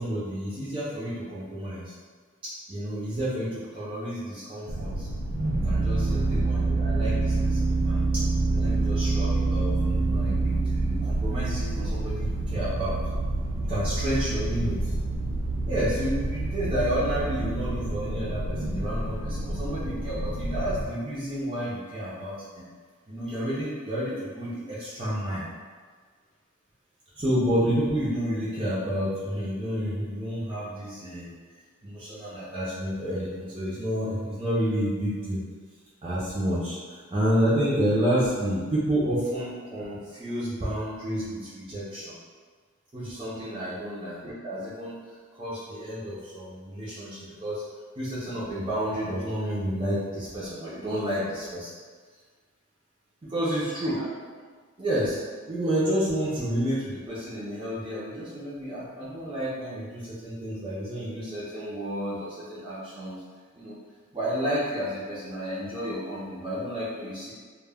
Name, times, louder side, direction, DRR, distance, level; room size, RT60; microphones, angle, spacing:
voice 1, 0.0-1.9 2.4-5.1 5.5-8.2 8.5-13.0 13.7-14.9 15.6-22.6 23.1-25.5 27.2-31.3 31.8-35.4 36.0-42.2 42.9-45.0 45.4-47.6 48.0-51.7 53.2-54.1 54.8-55.2 55.5-63.2 63.5-63.8 64.1-67.3, equal, 25° right, -10 dB, 0.4 m, -30 dB
sound 1, 4.7-20.8, right 2 dB, 85° right, 0.4 m, -27 dB
2.1 x 2.1 x 3.3 m, 1.5 s
head